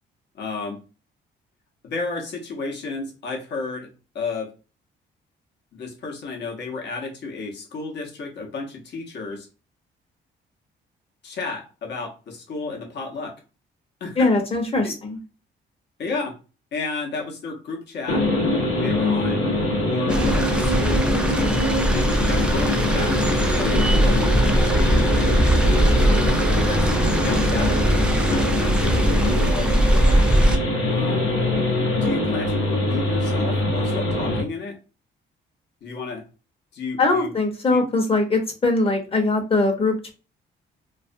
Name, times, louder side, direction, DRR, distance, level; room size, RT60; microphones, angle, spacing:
voice 1, 0.3-0.8 1.8-3.9 4.1-4.5 5.7-9.5 11.2-13.3 14.0-14.3 14.8-14.9 16.0-16.3 16.7-18.2 18.8-19.4 19.8-21.1 21.6-24.2 24.5-25.4 26.5-26.9 27.2-30.2 30.9-31.3 32.0-34.8 35.8-36.2 36.7-37.3 37.7-37.8, left 4 dB, 60° left, 1 dB, 0.8 m, -32 dB
voice 2, 14.2-15.2 37.0-40.1, left 3 dB, 30° left, 2 dB, 0.8 m, -21 dB
sound 1, 18.1-34.4, left 1 dB, 90° left, 0.9 m, -23 dB
sound 2, 20.1-30.6, right 1 dB, 5° right, 0.3 m, -20 dB
2.4 x 2.1 x 2.5 m, 0.33 s
cardioid pair, 90°, 20 cm